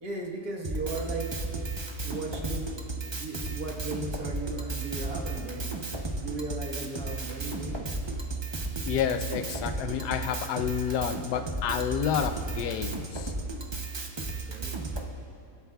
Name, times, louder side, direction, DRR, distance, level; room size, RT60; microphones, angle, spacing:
voice 1, 0.0-1.3 2.0-5.7 6.2-8.0 14.3-14.7, right 2 dB, 70° right, -1 dB, 1.9 m, -37 dB
Drum kit, 0.6-15.1, right 3 dB, 35° right, 0.4 m, -34 dB
voice 2, 8.9-13.3, left 8 dB, 90° left, 9 dB, 1.2 m, -29 dB
24.5 x 8.2 x 2.3 m, 2.6 s
omnidirectional pair, 1.7 m